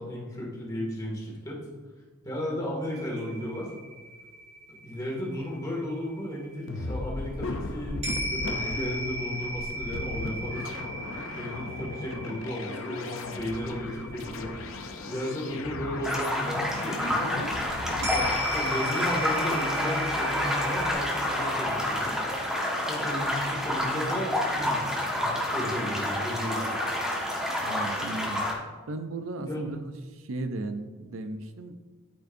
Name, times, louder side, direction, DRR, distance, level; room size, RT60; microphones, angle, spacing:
voice 1, 0.0-1.6 2.2-3.7 4.7-8.1 8.3-10.6 11.3-14.5 15.0-17.5 18.1-22.2 22.7-24.8 25.1-26.7 29.4-29.7, left 1 dB, 20° left, -4 dB, 2.1 m, -34 dB
sound 1, 2.9-6.5 8.0-16.2 16.5-16.6 18.0-20.9, right 1 dB, 30° right, 2.1 m, -36 dB
sound 2, 6.7-18.3, left 2 dB, 70° left, 0.6 m, -37 dB
sound 3, 16.0-28.5, left 1 dB, 5° right, 1.4 m, -29 dB
voice 2, 27.6-28.4 28.9-31.7, right 2 dB, 70° right, 8 dB, 0.6 m, -36 dB
13.5 x 5.2 x 2.7 m, 1.3 s
head